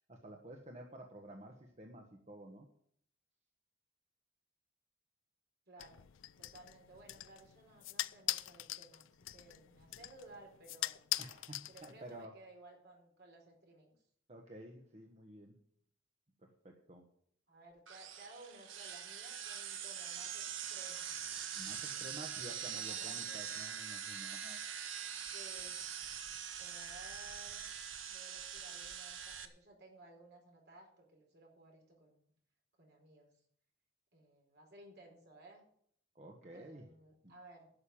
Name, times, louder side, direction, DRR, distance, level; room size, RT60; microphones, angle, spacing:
voice 1, 0.1-2.7 11.2-12.3 14.3-15.6 16.4-17.0 21.6-24.6 36.1-36.9 37.2-37.3, right 1 dB, 35° right, 2 dB, 1.3 m, -51 dB
voice 2, 5.7-6.0 6.4-11.0 11.7-13.9 17.5-20.4 20.7-21.1 22.0-22.5 22.7-23.6 25.3-25.8 26.6-27.7 28.1-32.3 32.8-33.3 34.1-35.6 36.5-37.7, right 2 dB, 60° right, 0 dB, 4.9 m, -58 dB
sound 1, 5.8-12.3, left 14 dB, 80° left, 0.5 m, -43 dB
sound 2, 17.9-29.5, right 8 dB, 75° right, 1.3 m, -43 dB
11.5 x 6.8 x 8.8 m, 0.65 s
head